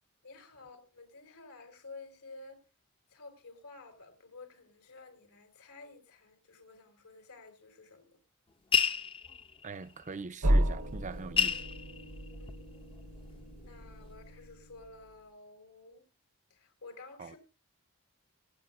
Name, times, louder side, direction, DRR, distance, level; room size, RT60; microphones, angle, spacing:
voice 1, 0.2-2.6 3.1-8.2 12.4-12.6 13.6-16.0 16.5-17.4, left 3 dB, 85° left, 4.1 m, -52 dB
sound 1, 8.7-9.7 10.8-10.9 11.1-12.8 13.2-13.9, left 7 dB, 25° left, 0.6 m, -30 dB
voice 2, 9.6-11.6 17.2-17.4, right 4 dB, 35° right, 0.6 m, -42 dB
sound 2, 10.4-15.1, right 1 dB, 70° right, 1.0 m, -33 dB
24.0 x 9.4 x 2.4 m
head